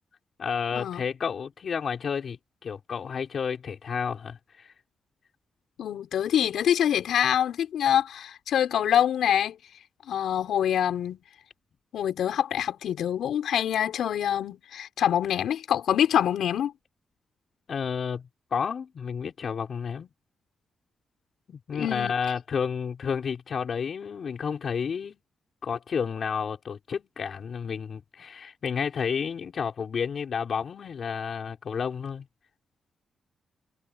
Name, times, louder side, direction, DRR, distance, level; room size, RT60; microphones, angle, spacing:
voice 1, 0.4-4.7 17.7-20.1 21.5-25.2 25.6-32.3, left 6 dB, 55° left, 5.3 m, -31 dB
voice 2, 5.8-9.5 10.1-11.2 11.9-16.7 21.8-22.1, left 10 dB, 85° left, 6.1 m, -25 dB
cardioid pair, 100°, 0 cm